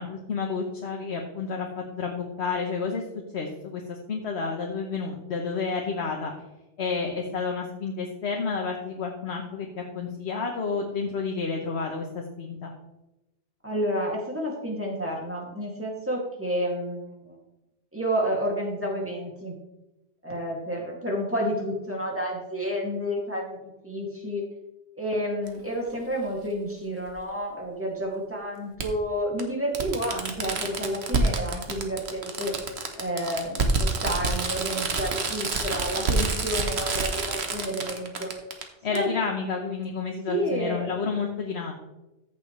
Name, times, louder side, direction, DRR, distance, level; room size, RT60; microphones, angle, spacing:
voice 1, 0.0-3.0 3.3-6.3 6.8-12.7 38.8-41.7, left 5 dB, 70° left, 1 dB, 1.3 m, -30 dB
voice 2, 13.6-17.4 17.9-19.5 20.2-24.4 25.0-32.5 33.0-38.3 38.9-39.1 40.3-41.0, equal, 10° right, -2 dB, 2.4 m, -30 dB
Fireworks, 25.5-25.6 27.1-27.2 28.8-28.9 29.4-29.5 29.7-38.6 38.9-39.0, right 3 dB, 65° right, 1.4 m, -28 dB
14.0 x 7.2 x 3.2 m, 0.97 s
omnidirectional pair, 1.2 m